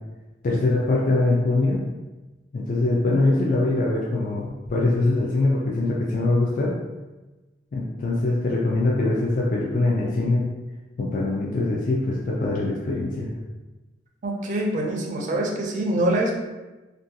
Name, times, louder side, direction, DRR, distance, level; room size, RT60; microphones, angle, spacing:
voice 1, 0.4-1.8 2.5-6.8 7.7-10.4 11.0-13.3, left 2 dB, 45° left, -4 dB, 0.3 m, -23 dB
voice 2, 14.2-16.4, right 1 dB, 45° right, 0 dB, 0.4 m, -24 dB
2.5 x 2.2 x 2.6 m, 1.1 s
head